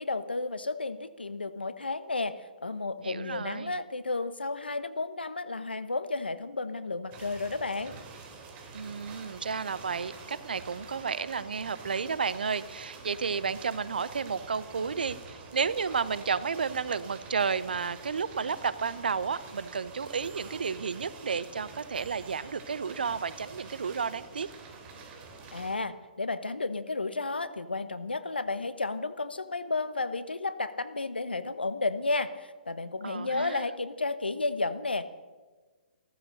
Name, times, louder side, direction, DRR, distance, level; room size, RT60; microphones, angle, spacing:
voice 1, 0.0-2.3 2.6-7.9 25.5-35.0, left 3 dB, 85° left, 13 dB, 1.1 m, -32 dB
voice 2, 3.0-3.8 8.7-24.5 33.0-33.6, right 5 dB, 70° right, 16 dB, 0.9 m, -32 dB
sound 1, 7.1-25.8, right 4 dB, 25° right, 3.3 m, -47 dB
16.0 x 13.5 x 6.5 m, 1.4 s
figure-of-eight pair, 125°, 5 cm